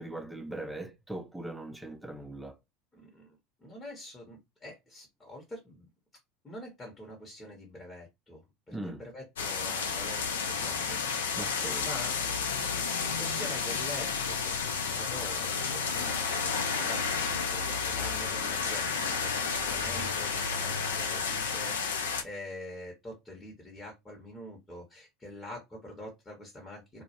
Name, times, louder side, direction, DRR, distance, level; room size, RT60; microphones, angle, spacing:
voice 1, 0.0-2.6 8.7-9.0 11.4-11.9, right 1 dB, 5° right, 0.5 m, -40 dB
voice 2, 2.9-5.9 6.4-11.0 11.8-12.3 13.0-19.3 19.6-27.0, left 1 dB, 20° left, 0.8 m, -45 dB
sound 1, 9.4-22.2, left 5 dB, 75° left, 0.4 m, -31 dB
2.2 x 2.1 x 2.8 m
figure-of-eight pair, 75°, 0 cm